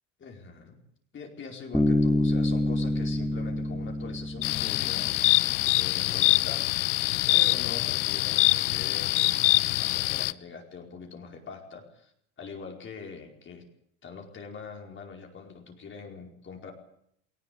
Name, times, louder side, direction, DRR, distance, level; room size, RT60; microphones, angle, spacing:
voice 1, 0.2-0.8 1.1-5.2 5.6-6.6 7.3-9.5 9.8-12.1 12.4-13.6 14.0-16.7, left 5 dB, 30° left, 2 dB, 4.8 m, -43 dB
Bass guitar, 1.7-5.4, left 1 dB, ahead, 2.4 m, -27 dB
sound 1, 4.4-10.3, left 22 dB, 90° left, 0.9 m, -24 dB
19.5 x 18.5 x 8.7 m, 0.71 s
cardioid pair, 130°, 36 cm